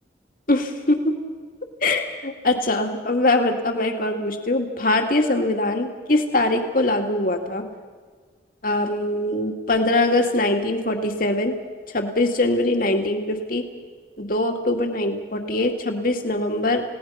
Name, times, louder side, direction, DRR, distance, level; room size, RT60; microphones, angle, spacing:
voice 1, 0.5-1.1 1.8-7.6 8.6-11.5 11.9-13.7 14.2-16.8, left 2 dB, 50° left, 4 dB, 2.3 m, -22 dB
30.0 x 18.0 x 5.8 m, 1.5 s
head